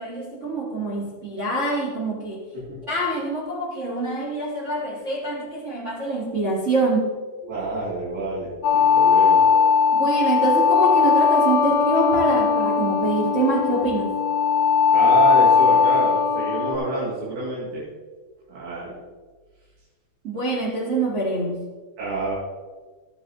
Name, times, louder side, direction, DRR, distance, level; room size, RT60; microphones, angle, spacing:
voice 1, 0.0-2.4 2.9-7.0 9.9-14.2 20.2-21.6, right 2 dB, 60° right, -7 dB, 0.7 m, -25 dB
voice 2, 7.4-9.5 14.9-17.9 18.5-19.0 22.0-22.4, right 2 dB, 90° right, -9 dB, 4.3 m, -27 dB
sound 1, 8.6-16.8, left 6 dB, 80° left, 1.5 m, -18 dB
13.0 x 9.3 x 3.0 m, 1.4 s
omnidirectional pair, 4.3 m